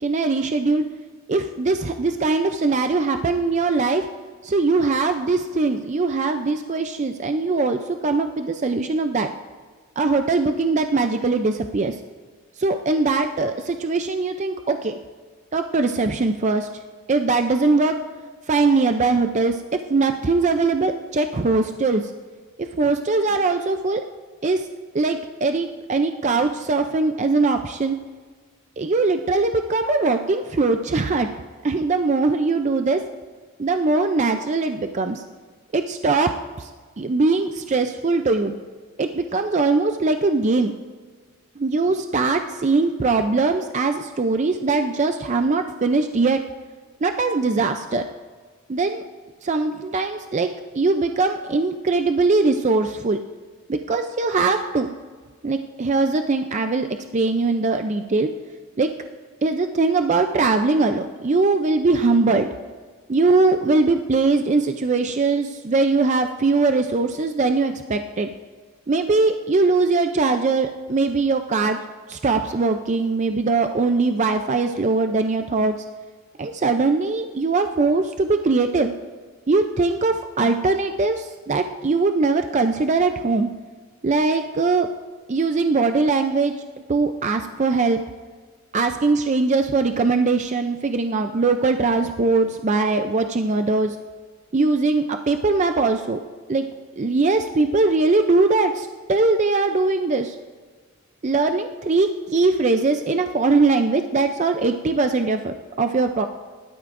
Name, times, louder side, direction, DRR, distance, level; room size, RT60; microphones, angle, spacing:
voice 1, 0.0-0.8 1.3-4.1 4.4-9.3 10.0-12.0 12.6-14.9 15.5-16.7 17.1-18.0 18.5-22.1 22.6-24.0 24.4-24.7 24.9-28.0 28.8-31.3 31.6-33.0 33.6-35.2 35.7-36.7 37.0-38.5 39.0-40.7 41.6-46.4 47.0-48.0 48.7-49.0 49.4-50.5 50.7-53.2 53.7-54.9 55.4-56.9 57.1-58.3 58.8-58.9 59.4-62.5 63.1-68.3 68.9-71.8 72.1-75.8 76.4-78.9 79.5-83.5 84.0-84.9 85.3-86.5 86.9-88.0 88.7-94.0 94.5-96.2 96.5-96.7 97.0-100.4 101.2-106.3, right 3 dB, 35° right, 7 dB, 0.4 m, -21 dB
20.0 x 12.5 x 2.6 m, 1.5 s
head